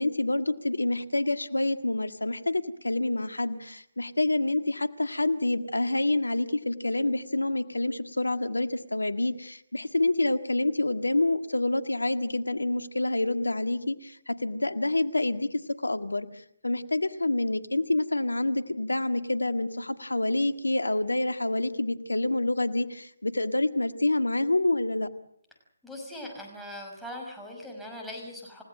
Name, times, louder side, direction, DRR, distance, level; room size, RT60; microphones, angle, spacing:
voice 1, 0.0-25.1, left 2 dB, 90° left, 10 dB, 1.8 m, -27 dB
voice 2, 25.8-28.6, left 1 dB, ahead, -2 dB, 5.9 m, -40 dB
29.5 x 17.0 x 7.7 m, 0.70 s
figure-of-eight pair, 150°, 0 cm